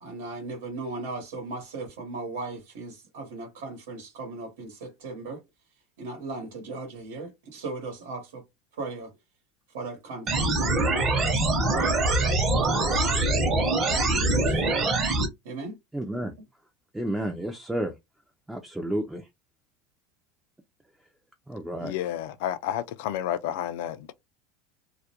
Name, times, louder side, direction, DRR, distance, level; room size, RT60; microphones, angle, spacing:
voice 1, 0.0-5.4 6.0-8.4 8.7-9.1 9.7-11.4 11.7-13.4 13.9-14.9 15.4-15.8, right 3 dB, 85° right, 1.0 m, -37 dB
sound 1, 10.3-15.3, right 2 dB, 30° right, 0.8 m, -24 dB
voice 2, 15.9-16.3 16.9-17.9 18.5-19.3 21.5-21.9, right 1 dB, 5° right, 0.3 m, -31 dB
voice 3, 21.8-24.1, left 11 dB, 75° left, 0.3 m, -31 dB
2.3 x 2.1 x 2.8 m
supercardioid pair, 135°, 0 cm